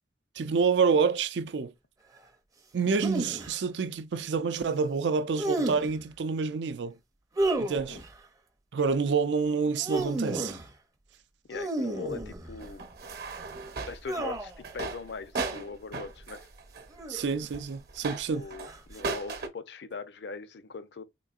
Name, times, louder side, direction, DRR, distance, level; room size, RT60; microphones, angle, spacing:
voice 1, 0.4-1.7 2.7-6.9 7.6-8.0 8.7-10.6 17.1-18.5, right 5 dB, 85° right, 0.4 m, -28 dB
sound 1, 3.0-3.5 5.4-6.0 7.4-8.1 9.6-10.7 11.5-12.7 14.1-14.6 15.3-15.6 16.9-17.5 18.7-19.0, right 2 dB, 20° right, 0.5 m, -32 dB
voice 2, 11.5-12.8 13.9-16.5 18.3-21.0, left 4 dB, 75° left, 0.5 m, -41 dB
sound 2, 12.6-19.5, right 4 dB, 60° right, 0.8 m, -37 dB
3.7 x 3.5 x 2.3 m
head